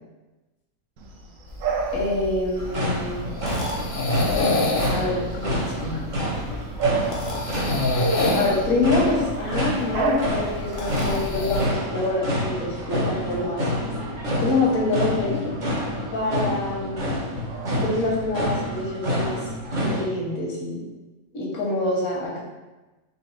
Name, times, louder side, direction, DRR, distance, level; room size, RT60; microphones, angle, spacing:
Bark / Bird vocalization bird call bird song, 1.0-18.5, right 5 dB, 75° right, 0.9 m, -35 dB
sound 1, 1.5-11.6, left 2 dB, 50° left, 0.7 m, -28 dB
voice 1, 1.9-3.3 4.9-6.0 8.3-13.7 14.4-15.4 16.1-17.0 17.8-19.4 19.8-20.8 21.3-22.4, left 2 dB, 90° left, -3 dB, 1.5 m, -26 dB
sound 2, 2.6-20.0, equal, 40° right, 0.7 m, -28 dB
3.9 x 3.0 x 3.1 m, 1.1 s
omnidirectional pair, 1.4 m